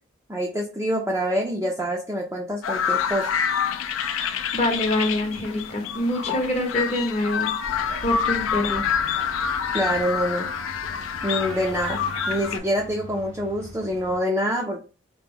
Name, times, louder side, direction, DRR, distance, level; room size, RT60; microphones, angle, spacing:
voice 1, 0.3-3.3 9.7-10.5 11.2-12.0 12.3-14.8, equal, 15° right, -2 dB, 0.4 m, -26 dB
sound 1, 2.6-12.6, left 7 dB, 75° left, 0.4 m, -27 dB
voice 2, 4.5-7.5 8.0-8.9, left 1 dB, 30° left, 3 dB, 0.7 m, -25 dB
sound 2, 7.6-14.2, equal, 75° right, 0.7 m, -40 dB
2.9 x 2.1 x 3.6 m, 0.35 s
head